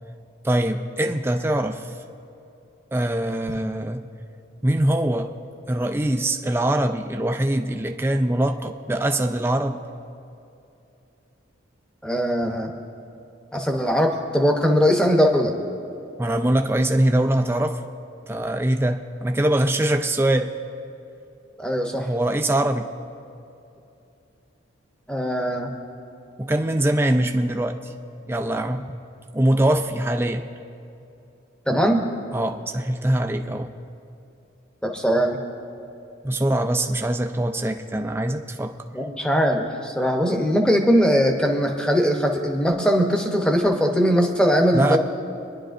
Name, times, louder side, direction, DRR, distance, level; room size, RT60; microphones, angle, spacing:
voice 1, 0.4-1.9 2.9-4.1 4.6-5.3 5.7-9.8 16.2-17.8 18.3-20.5 22.0-22.9 26.4-27.9 28.3-28.9 29.3-30.5 32.3-33.7 36.2-38.8 44.7-45.0, right 1 dB, 10° right, 6 dB, 0.3 m, -23 dB
voice 2, 12.0-12.7 13.5-15.6 21.6-22.1 25.1-25.7 31.7-32.1 34.8-35.4 38.9-45.0, equal, 5° left, 2 dB, 0.8 m, -20 dB
25.0 x 11.0 x 2.5 m, 2.7 s
head